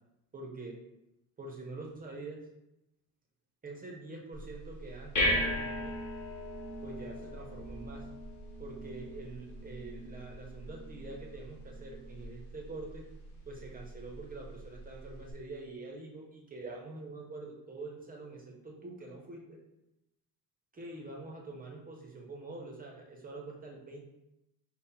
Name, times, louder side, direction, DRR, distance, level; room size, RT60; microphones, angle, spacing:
voice 1, 0.3-0.8 1.4-2.4 3.6-5.9 6.8-8.1 8.6-13.1 13.5-19.6 20.7-24.0, right 3 dB, 20° right, -1 dB, 0.5 m, -45 dB
sound 1, 4.3-15.3, equal, 45° left, 1.1 m, -38 dB
5.6 x 2.0 x 4.2 m, 0.89 s
cardioid pair, 175°, 40 cm